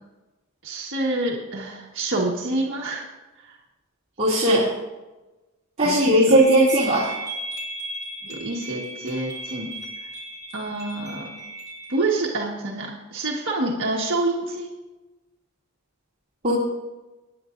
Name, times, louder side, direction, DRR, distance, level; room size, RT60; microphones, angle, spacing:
voice 1, 0.6-3.0 3.4-3.6 5.8-6.4 8.2-9.8 10.5-11.3 11.9-14.7, right 2 dB, 60° right, -2 dB, 1.6 m, -27 dB
voice 2, 4.2-4.7 5.8-7.1 16.4-16.5, right 1 dB, 30° right, -9 dB, 2.7 m, -18 dB
sound 1, 6.4-12.0, right 1 dB, 15° right, 4.2 m, -36 dB
25.5 x 9.8 x 2.6 m, 1.1 s
head